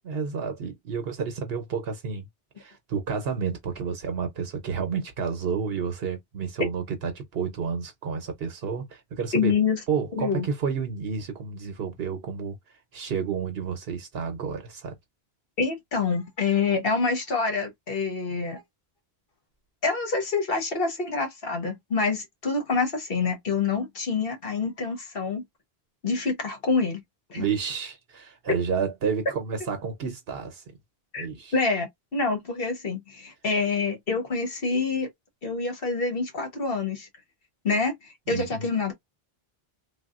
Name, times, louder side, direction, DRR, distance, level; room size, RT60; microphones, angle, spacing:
voice 1, 0.1-2.3 2.6-9.5 9.9-12.6 12.9-15.0 27.3-30.6 31.2-31.5 38.3-38.6, right 6 dB, 70° right, 1.0 m, -30 dB
voice 2, 9.3-9.8 10.1-10.5 15.6-18.6 19.8-25.4 26.0-27.0 27.3-27.4 31.1-31.3 31.5-35.1 35.4-37.1 37.6-38.9, left 4 dB, 65° left, 1.3 m, -26 dB
3.4 x 2.3 x 2.3 m
omnidirectional pair, 1.0 m